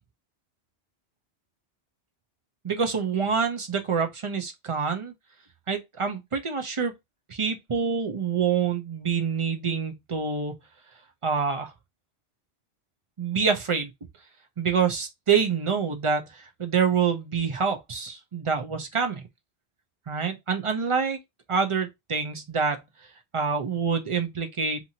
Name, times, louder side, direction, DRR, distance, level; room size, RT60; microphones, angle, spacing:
voice 1, 2.6-5.1 5.7-6.9 7.3-10.5 11.2-11.7 13.2-13.9 14.6-19.2 20.1-21.2 21.5-22.8 23.3-24.8, right 6 dB, 40° right, 0.5 m, -26 dB
2.8 x 2.6 x 2.7 m
omnidirectional pair, 1.1 m